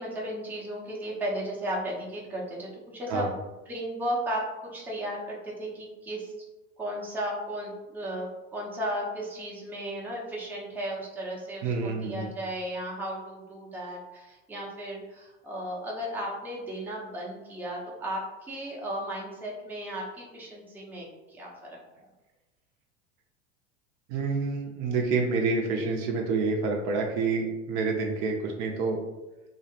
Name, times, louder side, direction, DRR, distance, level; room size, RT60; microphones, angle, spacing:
voice 1, 0.0-3.3 3.7-6.3 6.8-21.8, right 1 dB, 5° right, -4 dB, 0.5 m, -35 dB
voice 2, 11.6-12.3 24.1-29.0, right 4 dB, 50° right, 1 dB, 0.5 m, -28 dB
2.6 x 2.0 x 2.7 m, 1.1 s
hypercardioid pair, 95°, 38 cm